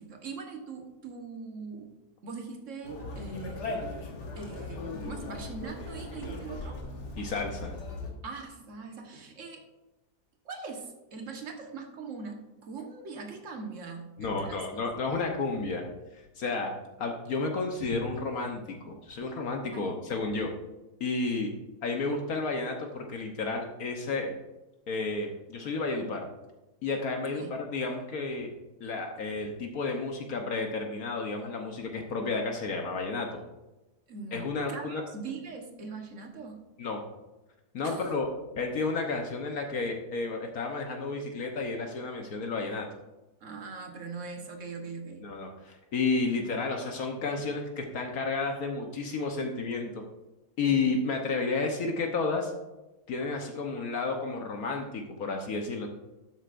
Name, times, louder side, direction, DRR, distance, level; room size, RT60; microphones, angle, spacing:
voice 1, 0.0-1.9 2.2-3.8 4.3-6.8 8.2-9.6 10.4-14.6 15.1-15.3 19.7-19.9 27.3-27.5 34.1-36.6 37.8-38.1 43.4-45.3 47.4-47.5 50.7-51.0, right 4 dB, 50° right, 3 dB, 1.6 m, -41 dB
Conversation, 2.8-8.1, left 2 dB, 85° left, 2.0 m, -38 dB
voice 2, 7.2-7.8 14.2-15.8 16.1-16.7 17.0-20.5 21.0-21.5 21.8-24.3 24.9-26.2 26.8-28.5 28.8-33.4 34.3-35.0 36.8-37.0 37.7-38.3 38.6-42.9 45.2-50.0 50.6-52.5 53.1-55.9, left 3 dB, 65° left, 3 dB, 1.4 m, -31 dB
12.0 x 8.0 x 2.5 m, 1.1 s
omnidirectional pair, 1.7 m